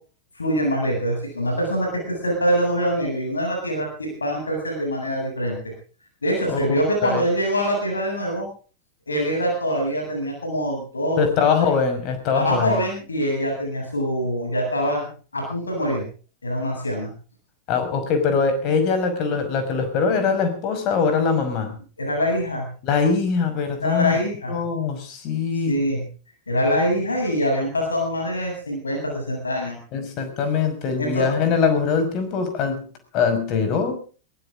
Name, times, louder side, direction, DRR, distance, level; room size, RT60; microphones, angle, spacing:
voice 1, 0.3-5.7 6.2-8.5 9.1-11.2 12.3-16.0 16.4-17.1 22.0-22.7 23.8-24.6 25.7-26.0 26.5-29.8 31.0-31.3, equal, 75° left, 1 dB, 7.9 m, -24 dB
voice 2, 6.5-7.2 11.2-12.8 17.7-21.8 22.8-24.2 24.5-25.8 29.9-32.9 33.1-34.0, left 5 dB, 40° left, 8 dB, 5.6 m, -22 dB
22.5 x 16.5 x 3.8 m, 0.38 s
figure-of-eight pair, 90°, 0 cm